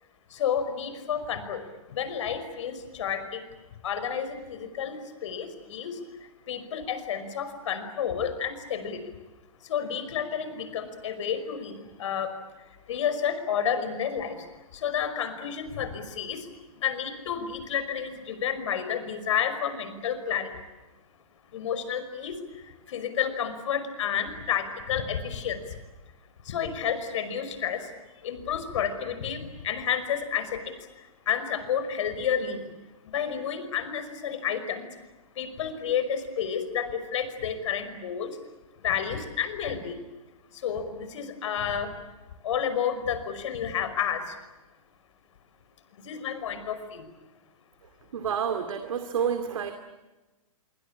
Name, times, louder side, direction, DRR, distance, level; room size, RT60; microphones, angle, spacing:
voice 1, 0.3-1.6 1.9-3.4 3.8-6.0 6.5-9.0 9.7-12.3 12.9-14.4 14.7-16.5 16.8-20.5 21.5-22.4 22.9-25.6 26.5-27.9 28.2-30.6 31.3-32.6 33.1-34.9 35.4-38.3 38.8-39.9 40.6-41.9 42.4-44.2 46.1-47.0, left 8 dB, 60° left, 10 dB, 5.4 m, -30 dB
voice 2, 48.1-49.7, right 7 dB, 65° right, 7 dB, 2.6 m, -29 dB
26.0 x 25.0 x 8.8 m, 1.1 s
hypercardioid pair, 130°, 18 cm